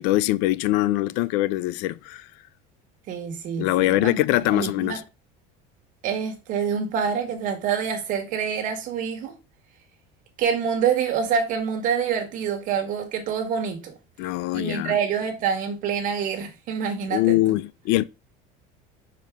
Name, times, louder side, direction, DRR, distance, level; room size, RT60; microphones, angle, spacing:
voice 1, 0.0-2.3 3.6-5.0 14.2-15.0 17.1-18.0, left 16 dB, 65° left, 0.4 m, -23 dB
voice 2, 3.1-4.2 4.5-5.0 6.0-9.3 10.4-14.0 14.5-17.4, right 7 dB, 45° right, 1.4 m, -26 dB
5.8 x 4.6 x 3.5 m
cardioid pair, 150°, 18 cm